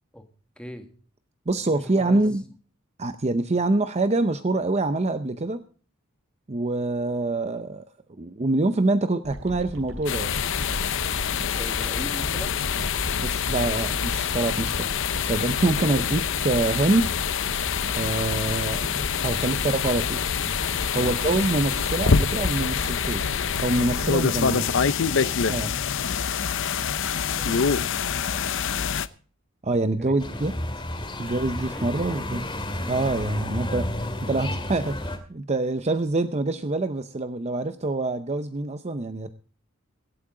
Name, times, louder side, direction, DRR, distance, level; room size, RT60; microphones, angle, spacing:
voice 1, 0.6-0.9 1.7-2.2 11.6-12.6 15.8-15.9 19.3-19.6 20.9-21.1 27.0-28.9 30.0-30.4 31.7-32.4, equal, 5° left, 5 dB, 1.9 m, -41 dB
voice 2, 1.5-2.4 3.0-5.6 6.5-7.8 8.2-10.3 13.2-17.1 17.9-18.9 19.2-20.2 20.9-23.2 23.6-24.7 25.5-25.8 29.6-30.5 31.2-32.5 32.9-33.9 34.2-39.3, right 2 dB, 30° right, 10 dB, 0.6 m, -25 dB
sound 1, 9.2-24.1, equal, 75° right, 4.6 m, -36 dB
sound 2, 10.1-29.1, left 7 dB, 65° left, 0.7 m, -26 dB
sound 3, 30.2-35.2, left 1 dB, 25° left, 2.3 m, -31 dB
24.0 x 8.5 x 3.8 m, 0.42 s
head